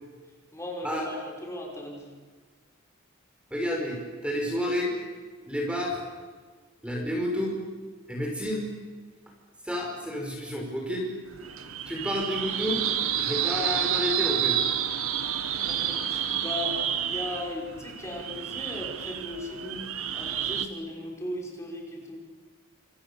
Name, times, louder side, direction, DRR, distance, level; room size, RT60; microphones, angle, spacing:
voice 1, 0.5-2.1 15.4-22.2, left 1 dB, 15° left, -1 dB, 5.9 m, -38 dB
voice 2, 3.5-4.9 5.5-6.0 6.8-7.6 8.1-8.7 9.6-11.1 11.9-12.8 13.2-14.6, equal, 5° right, 0 dB, 5.4 m, -30 dB
sound 1, 11.3-20.7, right 9 dB, 85° right, 1.6 m, -29 dB
28.0 x 28.0 x 7.1 m, 1.4 s
head